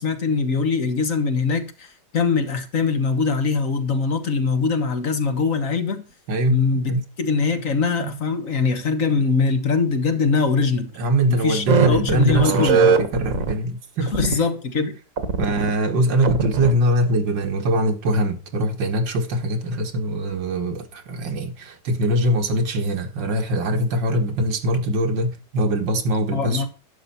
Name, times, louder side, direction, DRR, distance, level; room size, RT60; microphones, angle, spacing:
voice 1, 0.0-6.0 6.5-6.9 7.2-10.9 11.3-12.8 14.1-14.9 26.3-26.7, left 4 dB, 50° left, 1.7 m, -22 dB
voice 2, 6.3-6.6 6.9-7.0 8.0-8.2 10.9-14.4 15.4-26.7, right 1 dB, 85° right, 2.3 m, -22 dB
sound 1, 11.7-13.5 14.1-14.3 15.2-15.7 16.2-16.7, right 5 dB, 50° right, 1.6 m, -20 dB
11.0 x 7.1 x 4.3 m
omnidirectional pair, 1.9 m